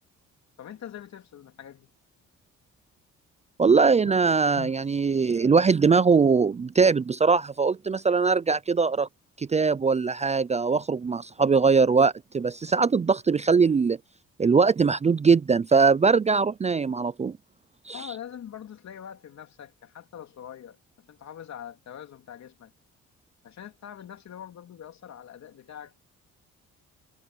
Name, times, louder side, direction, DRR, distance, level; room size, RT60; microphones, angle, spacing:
voice 1, 0.6-1.9 4.0-4.2 4.5-4.7 17.9-22.7 23.4-25.9, left 9 dB, 65° left, 3.2 m, -43 dB
voice 2, 3.6-9.1 9.4-14.0 14.4-17.3 17.9-18.0, right 5 dB, 25° right, 0.4 m, -21 dB
cardioid pair, 90°, 30 cm